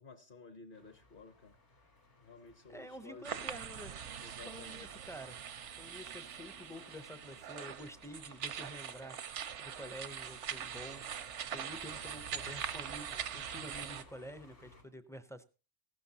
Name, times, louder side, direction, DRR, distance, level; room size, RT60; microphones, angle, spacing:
voice 1, 0.0-1.6 2.2-3.3 4.2-4.9, left 4 dB, 50° left, 1.1 m, -54 dB
sound 1, 0.7-14.8, left 1 dB, 80° left, 3.2 m, -60 dB
voice 2, 2.7-5.4 5.8-9.2 9.6-11.0 11.5-15.4, equal, 5° left, 0.4 m, -49 dB
sound 2, 3.2-14.0, right 8 dB, 85° right, 1.1 m, -43 dB
15.5 x 12.0 x 2.8 m
omnidirectional pair, 1.2 m